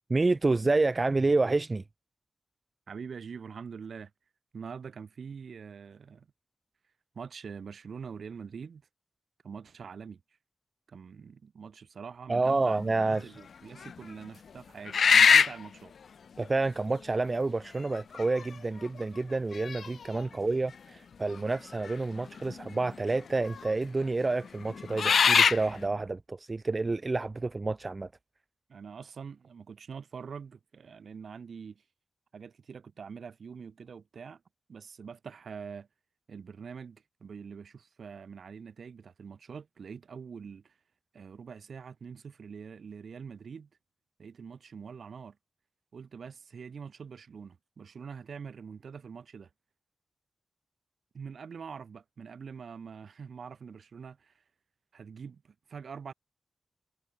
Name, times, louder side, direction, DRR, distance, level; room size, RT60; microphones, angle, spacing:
voice 1, 0.1-1.8 12.3-13.3 16.4-28.1, right 3 dB, 30° right, 1.2 m, -29 dB
voice 2, 2.9-4.1 4.5-6.3 7.1-8.8 9.4-10.2 10.9-15.9 20.3-20.5 28.7-31.8 32.3-34.4 34.7-35.9 36.3-40.8 41.1-43.7 44.2-45.4 45.9-49.5 51.1-54.4 54.9-56.1, right 6 dB, 70° right, 4.3 m, -44 dB
sound 1, 12.8-13.2 13.8-13.9 14.9-15.7 16.9-17.0 17.9-18.4 18.9-19.0 19.5-20.2 21.9-22.0 22.3-22.9 23.5-23.7 24.6-25.6, left 6 dB, 75° left, 1.2 m, -22 dB
wide cardioid pair, 150°, 0 cm